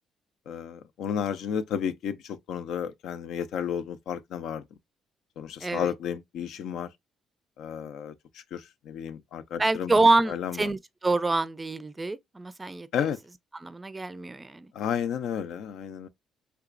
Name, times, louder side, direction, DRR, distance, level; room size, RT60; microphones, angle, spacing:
voice 1, 0.5-4.6 5.4-6.9 7.6-9.9 10.3-10.7 12.9-13.2 14.7-16.1, left 8 dB, 75° left, 0.4 m, -32 dB
voice 2, 5.6-5.9 9.6-12.9 13.5-14.7, right 3 dB, 20° right, 0.4 m, -26 dB
3.4 x 2.9 x 2.4 m
supercardioid pair, 75°, 0 cm